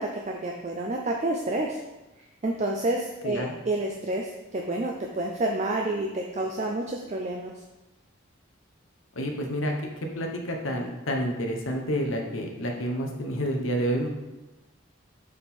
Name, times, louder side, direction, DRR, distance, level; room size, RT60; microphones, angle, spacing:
voice 1, 0.0-1.8 2.4-7.5, right 2 dB, 35° right, 1 dB, 0.4 m, -29 dB
voice 2, 9.1-9.7 10.1-14.1, equal, 80° left, 2 dB, 0.9 m, -29 dB
6.4 x 3.6 x 4.3 m, 1.1 s
head